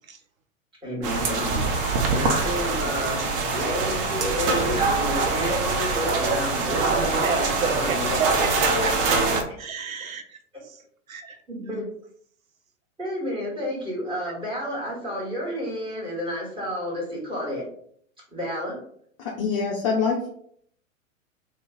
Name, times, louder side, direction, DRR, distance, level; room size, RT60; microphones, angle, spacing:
voice 1, 0.8-3.2 3.5-8.5 11.5-11.9 13.0-17.7 18.3-18.8, equal, 10° right, -5 dB, 1.5 m, -31 dB
sound 1, 1.0-9.4, right 3 dB, 45° right, 0.7 m, -24 dB
voice 2, 6.6-10.8 11.1-11.8, right 5 dB, 85° right, 6 dB, 0.6 m, -32 dB
voice 3, 19.2-20.3, left 5 dB, 25° left, -1 dB, 0.3 m, -25 dB
2.9 x 2.3 x 3.6 m, 0.64 s
figure-of-eight pair, 100°, 40 cm